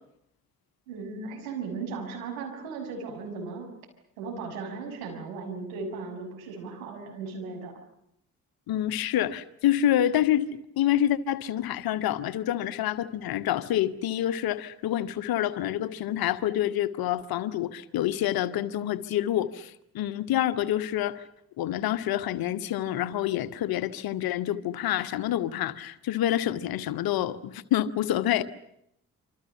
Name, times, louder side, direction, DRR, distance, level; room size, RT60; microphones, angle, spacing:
voice 1, 0.9-3.7 4.2-7.8, right 4 dB, 75° right, 6.4 m, -36 dB
voice 2, 8.7-10.5 10.8-21.3 21.6-28.4, left 12 dB, 55° left, 1.5 m, -27 dB
27.5 x 26.0 x 6.9 m
figure-of-eight pair, 40°, 42 cm